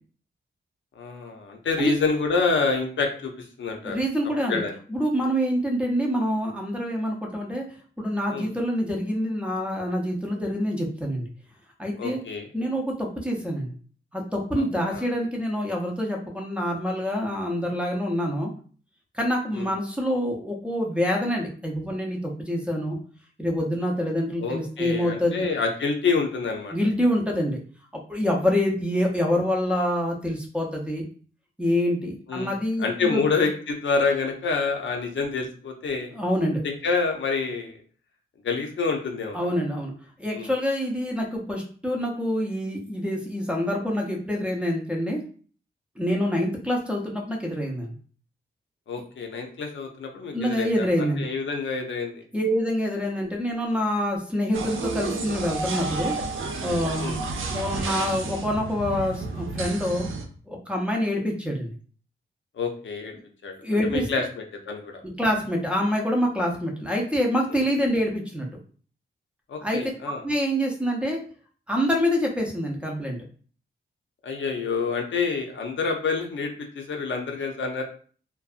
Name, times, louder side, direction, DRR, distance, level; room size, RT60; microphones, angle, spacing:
voice 1, 1.0-4.0 4.5-4.7 8.3-8.5 12.0-12.5 14.5-14.6 14.9-15.0 19.5-19.7 24.4-26.7 32.3-32.5 32.8-36.1 36.6-37.8 38.4-39.4 40.3-40.5 48.9-52.2 57.0-57.2 62.5-63.1 63.4-63.5 63.9-65.0 67.5-67.6 69.5-70.2 74.2-77.8, left 4 dB, 70° left, 3 dB, 0.5 m, -27 dB
voice 2, 3.8-4.6 4.9-7.7 8.0-11.3 11.8-12.2 12.5-13.7 14.1-18.5 19.1-23.0 23.4-25.5 26.7-27.6 27.9-31.0 31.6-33.2 36.1-36.6 39.3-39.9 40.2-45.2 46.0-48.0 50.3-51.3 52.3-56.2 56.6-57.1 57.5-60.1 60.5-61.7 63.6-64.1 65.2-68.5 69.6-69.8 70.2-71.2 71.7-73.2, equal, 5° right, -1 dB, 0.5 m, -26 dB
sound 1, 54.5-60.3, right 3 dB, 90° right, 0.4 m, -31 dB
2.6 x 2.2 x 2.4 m, 0.43 s
wide cardioid pair, 115°, 20 cm